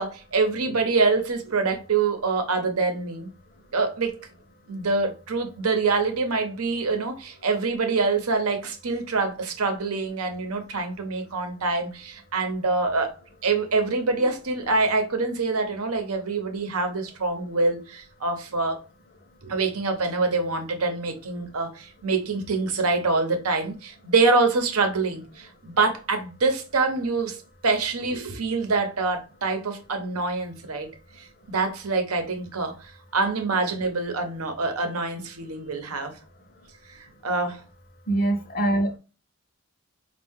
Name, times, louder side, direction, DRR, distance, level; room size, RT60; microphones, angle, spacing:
voice 1, 0.0-3.3 3.7-4.2 4.7-18.8 19.4-30.9 31.2-36.2 37.2-37.6, right 3 dB, 85° right, 0.9 m, -25 dB
voice 2, 38.1-39.0, right 1 dB, 40° left, 0.7 m, -23 dB
4.5 x 2.4 x 3.5 m
head